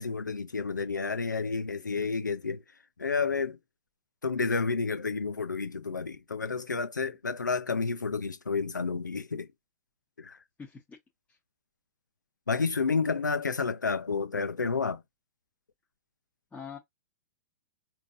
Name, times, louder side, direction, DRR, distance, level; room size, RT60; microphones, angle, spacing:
voice 1, 0.0-2.6 3.0-3.6 4.2-9.5 10.2-10.4 12.5-15.0, left 4 dB, 85° left, 0.6 m, -30 dB
voice 2, 10.6-11.0 11.3-11.4 16.5-16.8, left 6 dB, 15° left, 1.1 m, -43 dB
5.0 x 2.8 x 2.6 m
figure-of-eight pair, 105°, 10 cm